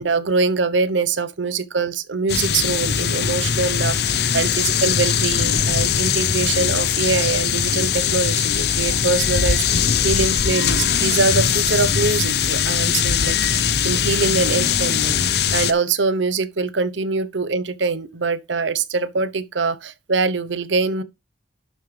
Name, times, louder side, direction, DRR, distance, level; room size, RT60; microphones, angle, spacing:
voice 1, 0.0-21.0, right 4 dB, 80° right, 0.9 m, -23 dB
sound 1, 2.3-15.7, left 8 dB, 55° left, 0.7 m, -20 dB
11.5 x 7.5 x 3.3 m
head